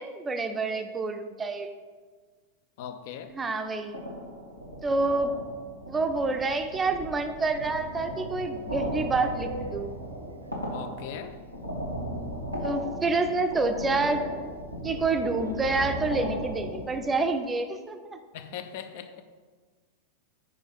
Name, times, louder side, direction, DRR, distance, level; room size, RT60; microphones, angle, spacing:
voice 1, 0.0-1.7 3.3-4.0 4.8-5.3 5.9-9.9 12.6-14.2 14.8-18.2, right 3 dB, 15° right, 7 dB, 0.5 m, -28 dB
voice 2, 2.8-3.3 10.7-11.4 18.3-19.2, left 8 dB, 50° left, 9 dB, 0.5 m, -39 dB
sound 1, 3.9-17.1, equal, 90° left, 1.3 m, -36 dB
sound 2, 7.6-10.7 10.9-11.0 11.4-11.5 11.7-11.8 13.1-13.2 14.9-15.7, right 2 dB, 80° right, 0.5 m, -43 dB
5.0 x 4.8 x 5.4 m, 1.5 s
figure-of-eight pair, 90°, 0 cm